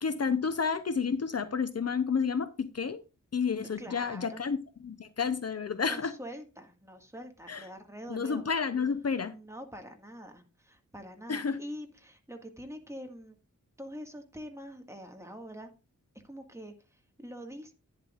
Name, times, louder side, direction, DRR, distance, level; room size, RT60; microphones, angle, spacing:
voice 1, 0.0-3.0 3.3-6.2 7.5-7.7 8.1-9.3 11.3-11.6, left 5 dB, 50° left, 0.7 m, -30 dB
voice 2, 3.8-4.4 5.9-8.5 9.3-13.4 13.8-15.7 16.2-17.7, equal, 10° right, 1.7 m, -45 dB
11.0 x 10.0 x 2.4 m
wide cardioid pair, 115°, 31 cm